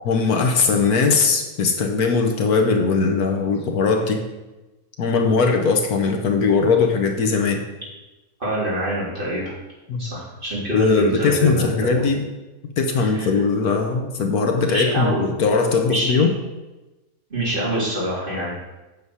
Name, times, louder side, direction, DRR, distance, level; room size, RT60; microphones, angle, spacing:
voice 1, 0.0-4.2 5.0-7.6 9.9-10.0 10.7-12.2 12.8-16.3, left 4 dB, 75° left, 3 dB, 1.5 m, -20 dB
voice 2, 8.4-9.4 10.0-12.0 13.0-13.3 14.6-15.2 15.9-16.2 17.3-18.5, right 1 dB, 35° right, -7 dB, 3.7 m, -25 dB
8.6 x 6.9 x 4.8 m, 1.1 s
omnidirectional pair, 1.6 m